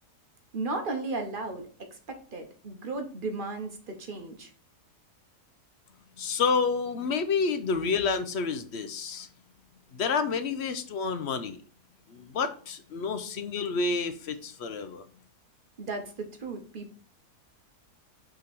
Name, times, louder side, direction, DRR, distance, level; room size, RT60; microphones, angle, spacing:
voice 1, 0.5-1.6 1.9-4.5 15.8-16.9, right 3 dB, 40° right, 5 dB, 1.0 m, -35 dB
voice 2, 6.2-9.3 9.9-11.6 12.1-15.0, left 5 dB, 60° left, 10 dB, 0.7 m, -29 dB
5.7 x 3.8 x 5.9 m, 0.41 s
omnidirectional pair, 1.7 m